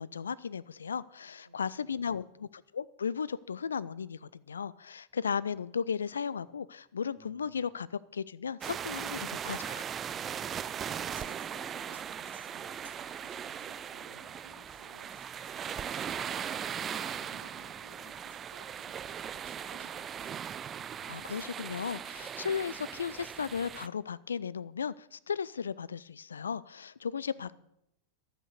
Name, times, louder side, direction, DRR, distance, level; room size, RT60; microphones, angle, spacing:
voice 1, 0.0-9.8 21.0-27.6, left 6 dB, 70° left, 19 dB, 0.4 m, -35 dB
voice 2, 1.4-2.4 10.8-15.1 15.4-20.6 27.3-27.6, equal, 90° right, 0 dB, 1.4 m, -59 dB
sound 1, 5.1-5.2 6.1-7.9 8.8-10.7 11.5-16.0 16.9-21.4, equal, 15° left, 4.3 m, -64 dB
sound 2, 8.6-23.9, right 8 dB, 25° right, 0.4 m, -39 dB
sound 3, 10.6-18.0 18.3-20.5 20.7-22.2, right 4 dB, 70° right, 1.3 m, -63 dB
11.5 x 8.1 x 6.6 m, 0.78 s
figure-of-eight pair, 90°, 0 cm